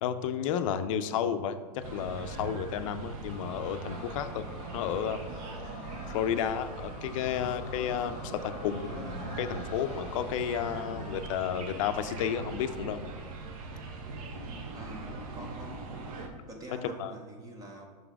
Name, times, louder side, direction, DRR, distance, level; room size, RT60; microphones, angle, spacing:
voice 1, 0.0-4.5 4.7-5.2 6.1-8.2 8.6-13.0 17.0-17.1, left 8 dB, 50° left, 10 dB, 0.5 m, -32 dB
sound 1, 1.8-16.3, right 3 dB, 55° right, 1.0 m, -41 dB
sound 2, 3.3-12.2, left 5 dB, 30° left, 0.8 m, -48 dB
voice 2, 14.7-16.2 16.5-17.9, right 1 dB, 15° right, 2 dB, 0.6 m, -45 dB
5.5 x 3.9 x 4.6 m, 1.4 s
hypercardioid pair, 135°, 21 cm